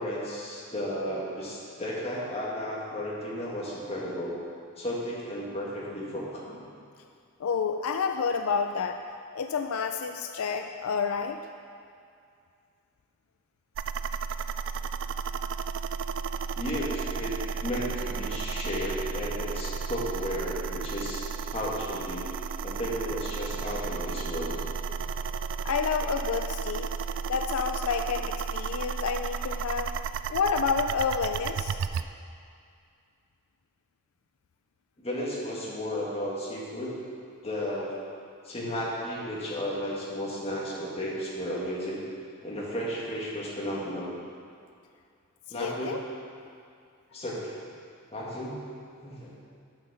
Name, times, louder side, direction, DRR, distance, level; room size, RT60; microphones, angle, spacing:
voice 1, 0.0-4.3 4.8-6.6 16.5-17.3 17.6-21.2 21.5-22.3 22.6-24.6 35.0-36.9 37.4-38.0 38.4-42.0 42.4-44.1 45.5-45.9 47.1-47.5 48.1-48.6 49.0-49.3, equal, 30° left, -5 dB, 2.0 m, -33 dB
voice 2, 7.4-9.0 9.3-11.4 25.6-26.9 27.3-29.9 30.3-31.8 45.5-46.0, left 5 dB, 80° left, 6 dB, 0.4 m, -29 dB
sound 1, 13.7-32.0, right 5 dB, 60° right, 0.3 m, -33 dB
9.3 x 6.2 x 6.3 m, 2.3 s
head